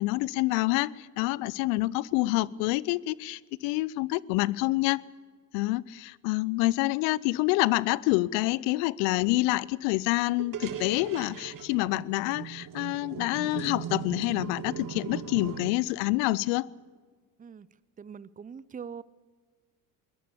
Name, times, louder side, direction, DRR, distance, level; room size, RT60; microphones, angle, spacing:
voice 1, 0.0-5.0 5.5-16.7, left 20 dB, 70° left, 24 dB, 0.7 m, -27 dB
sound 1, 10.4-15.7, right 8 dB, 45° right, 1.9 m, -39 dB
voice 2, 18.0-19.0, right 7 dB, 15° right, 19 dB, 0.7 m, -42 dB
21.5 x 18.5 x 7.0 m, 1.5 s
hypercardioid pair, 65°, 47 cm